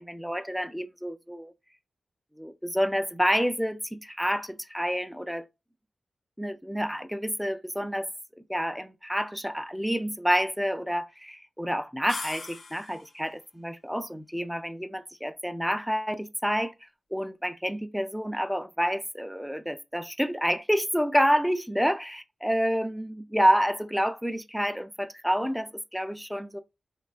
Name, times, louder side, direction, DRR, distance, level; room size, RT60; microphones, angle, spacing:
voice 1, 0.0-1.5 2.4-5.4 6.4-8.1 8.5-16.7 17.1-26.6, equal, ahead, 0.4 m, -28 dB
sound 1, 12.1-13.2, left 3 dB, 60° left, 0.4 m, -39 dB
3.1 x 2.2 x 2.4 m
cardioid pair, 75°, 0 cm